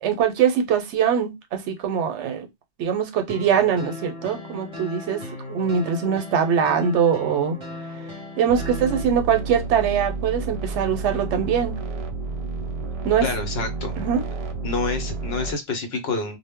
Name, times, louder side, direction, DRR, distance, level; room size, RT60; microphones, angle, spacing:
voice 1, 0.0-2.5 2.8-7.6 8.4-11.8 13.0-13.3 14.0-14.2, right 7 dB, 90° right, 0.9 m, -22 dB
sound 1, 3.3-9.0, left 1 dB, 30° right, 0.8 m, -37 dB
sound 2, 8.5-15.5, right 3 dB, 65° right, 0.3 m, -31 dB
voice 2, 13.2-13.9 14.6-16.4, left 3 dB, 65° left, 0.9 m, -27 dB
2.0 x 2.0 x 3.4 m
omnidirectional pair, 1.2 m